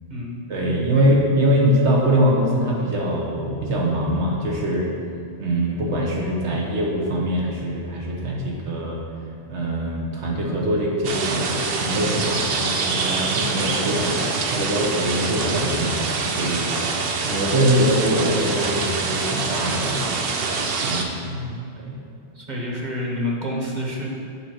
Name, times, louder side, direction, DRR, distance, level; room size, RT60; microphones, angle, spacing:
voice 1, 0.5-4.9 5.4-9.0 9.5-20.1 20.8-21.2 21.8-21.9, equal, 90° right, -2 dB, 1.5 m, -23 dB
sound 1, 11.0-21.0, right 4 dB, 60° right, 0.8 m, -25 dB
voice 2, 21.2-21.7 22.3-24.1, left 1 dB, 40° right, -2 dB, 1.3 m, -28 dB
7.6 x 4.2 x 6.3 m, 2.4 s
omnidirectional pair, 1.1 m